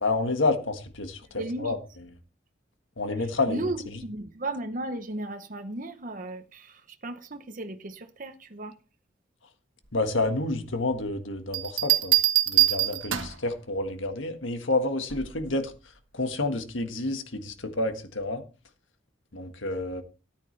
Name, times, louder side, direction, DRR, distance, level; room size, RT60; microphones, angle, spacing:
voice 1, 0.0-1.8 3.0-3.7 9.9-12.1 12.5-15.7 16.1-18.4 19.3-20.0, left 2 dB, 75° left, 1.6 m, -29 dB
voice 2, 1.2-1.8 3.2-8.8, right 2 dB, 45° right, 0.9 m, -35 dB
Bell, 11.5-13.5 15.1-15.4, right 15 dB, 85° right, 1.3 m, -23 dB
13.5 x 9.7 x 3.3 m
head